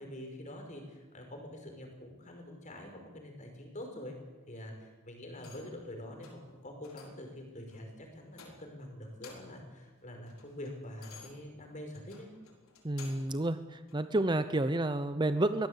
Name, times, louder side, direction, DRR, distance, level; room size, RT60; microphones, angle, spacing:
voice 1, 0.0-4.2 4.5-12.3, left 1 dB, 35° left, 3 dB, 5.2 m, -46 dB
sound 1, 5.4-5.8 6.2-6.5 6.8-7.3 7.7-7.9 8.3-8.8 9.1-9.7 10.0-13.4 13.9-14.0, left 5 dB, 70° left, 4.4 m, -54 dB
voice 2, 12.8-15.7, right 1 dB, 20° right, 10 dB, 0.7 m, -30 dB
23.0 x 17.5 x 8.1 m, 1.3 s
head